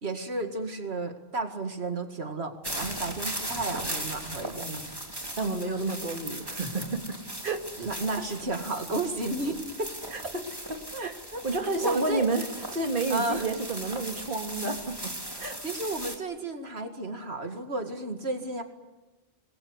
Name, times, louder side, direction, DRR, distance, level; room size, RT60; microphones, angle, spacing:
voice 1, 0.0-4.8 7.8-9.9 10.9-11.5 11.8-12.3 13.1-13.5 15.6-18.6, right 2 dB, 85° right, 5 dB, 2.4 m, -32 dB
sound 1, 2.6-16.2, right 1 dB, 20° right, 3.5 m, -38 dB
voice 2, 4.5-4.9 5.4-7.2 7.4-7.7 10.1-10.2 10.7-11.1 11.4-12.5 12.7-15.1 15.4-15.6, right 3 dB, 55° right, 4 dB, 2.5 m, -30 dB
27.5 x 21.5 x 8.1 m, 1.1 s
omnidirectional pair, 1.1 m